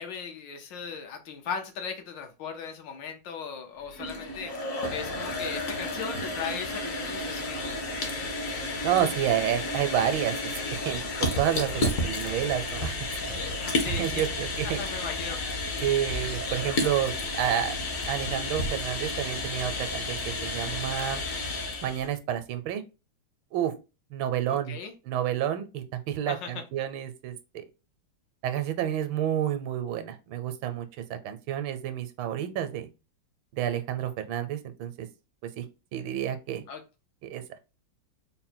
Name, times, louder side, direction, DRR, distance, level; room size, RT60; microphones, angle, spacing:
voice 1, 0.0-4.6 4.9-7.7 13.8-14.2 14.6-15.4 24.5-24.9 26.3-26.6 36.7-36.8, left 6 dB, 70° left, 1.3 m, -37 dB
sound 1, 3.8-22.1, left 2 dB, 55° left, 1.0 m, -32 dB
voice 2, 8.8-11.0 11.4-13.1 13.6-14.8 15.8-17.8 18.1-21.2 21.8-22.8 23.5-23.7 24.1-24.8 25.0-27.6 28.4-32.9 33.6-35.1 35.6-35.7 35.9-36.6 37.2-37.4, right 10 dB, 80° right, 1.4 m, -30 dB
3.8 x 2.1 x 4.2 m
omnidirectional pair, 2.1 m